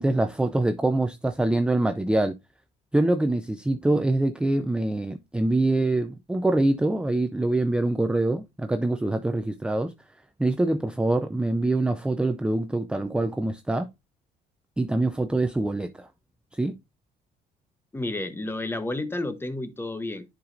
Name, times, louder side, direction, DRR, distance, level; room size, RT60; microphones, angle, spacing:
voice 1, 0.0-2.3 2.9-9.9 10.4-13.9 14.8-16.1 16.5-16.7, right 2 dB, 5° right, 0.5 m, -24 dB
voice 2, 17.9-20.2, left 2 dB, 15° left, 0.9 m, -31 dB
10.5 x 4.8 x 2.5 m
cardioid pair, 110°, 17 cm